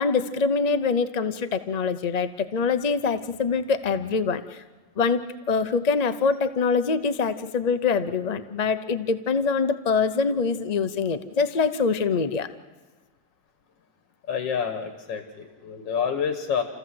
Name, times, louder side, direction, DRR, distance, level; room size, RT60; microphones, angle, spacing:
voice 1, 0.0-4.6 5.0-12.5, left 5 dB, 65° left, 10 dB, 0.4 m, -24 dB
voice 2, 14.3-16.6, left 7 dB, 85° left, 7 dB, 2.1 m, -28 dB
29.5 x 15.0 x 7.7 m, 1.3 s
omnidirectional pair, 1.9 m